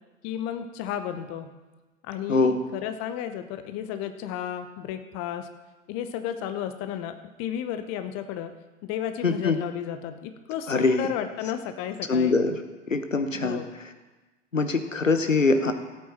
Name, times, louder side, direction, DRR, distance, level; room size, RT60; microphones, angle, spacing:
voice 1, 0.2-1.5 2.0-5.5 5.9-8.5 8.8-12.4 13.3-13.7, left 10 dB, 40° left, 9 dB, 0.9 m, -33 dB
voice 2, 2.3-2.6 9.2-9.6 10.7-11.1 12.1-12.6 12.9-13.6 14.5-15.7, left 3 dB, 90° left, 8 dB, 1.0 m, -23 dB
16.5 x 8.5 x 4.3 m, 1.2 s
figure-of-eight pair, 85°, 37 cm